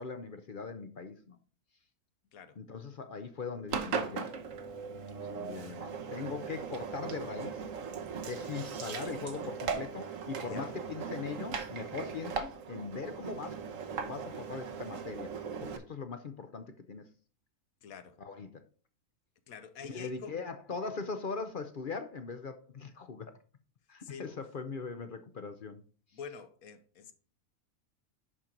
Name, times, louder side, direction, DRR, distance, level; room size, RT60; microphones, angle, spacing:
voice 1, 0.0-1.4 2.6-4.3 5.3-7.7 8.2-13.6 14.0-15.3 15.6-17.1 18.2-18.6 19.8-23.3 23.9-25.8, left 5 dB, 50° left, 0.6 m, -40 dB
Engine, 3.7-15.8, right 6 dB, 65° right, 1.3 m, -39 dB
voice 2, 17.8-18.2 19.5-20.3 24.0-24.3 26.1-27.1, left 6 dB, 75° left, 1.3 m, -46 dB
11.0 x 4.5 x 3.8 m
omnidirectional pair, 1.5 m